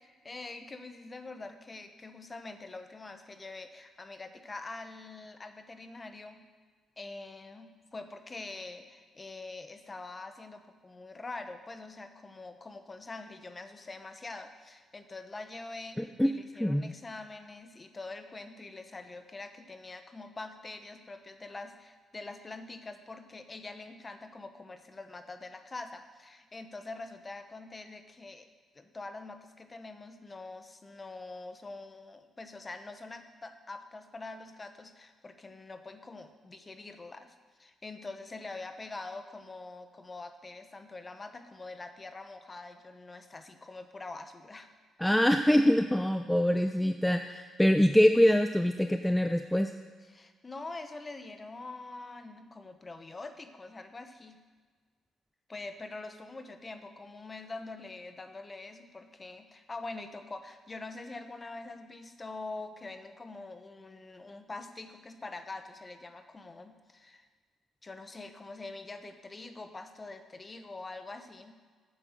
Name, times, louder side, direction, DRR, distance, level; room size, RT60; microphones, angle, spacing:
voice 1, 0.0-6.4 7.0-28.5 28.7-44.7 50.0-54.4 55.5-67.3 67.8-71.5, left 3 dB, 25° left, 8 dB, 0.9 m, -44 dB
voice 2, 16.0-16.3 16.6-16.9 45.0-49.7, equal, 5° left, 7 dB, 0.4 m, -24 dB
8.5 x 7.5 x 6.6 m, 1.5 s
cardioid pair, 90°, 0 cm